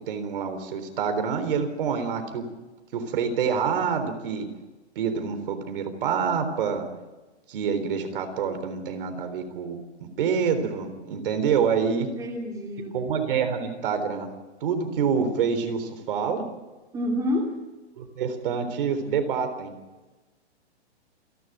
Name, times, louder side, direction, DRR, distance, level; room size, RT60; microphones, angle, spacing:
voice 1, 0.1-2.4 2.9-4.5 5.0-6.9 7.5-9.8 10.2-12.1 12.9-14.3 14.6-16.4 18.0-19.7, right 6 dB, 50° right, 8 dB, 3.9 m, -26 dB
voice 2, 12.0-13.0 16.9-17.5, left 1 dB, 10° right, 0 dB, 2.8 m, -28 dB
28.5 x 12.0 x 9.0 m, 1.2 s
hypercardioid pair, 155°, 34 cm